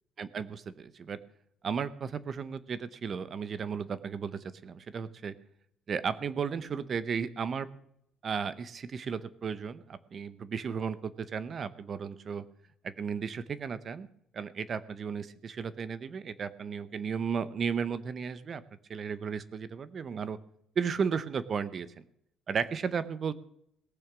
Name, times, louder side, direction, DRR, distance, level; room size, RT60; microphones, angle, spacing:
voice 1, 0.2-1.2 1.6-5.3 5.9-7.7 8.2-12.4 12.8-14.1 14.3-18.6 18.9-20.4 20.8-21.9 22.5-23.3, right 6 dB, 35° right, 16 dB, 0.8 m, -34 dB
18.5 x 7.1 x 6.1 m, 0.74 s
cardioid pair, 155°, 0 cm